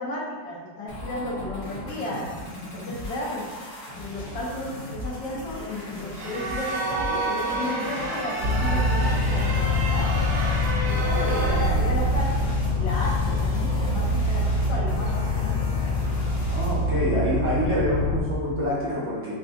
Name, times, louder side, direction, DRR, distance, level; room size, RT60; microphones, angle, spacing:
voice 1, 0.0-2.3 2.7-3.4 4.0-10.3 10.9-15.6, left 2 dB, 75° left, -4 dB, 1.5 m, -33 dB
sound 1, 0.9-16.9, left 1 dB, 50° left, 1.5 m, -39 dB
sound 2, 6.1-11.7, right 2 dB, 70° right, 1.3 m, -30 dB
sound 3, 8.4-18.2, left 1 dB, 85° right, 1.5 m, -24 dB
voice 2, 16.5-19.4, equal, 10° right, -9 dB, 0.6 m, -26 dB
5.4 x 2.3 x 2.6 m, 1.4 s
omnidirectional pair, 2.0 m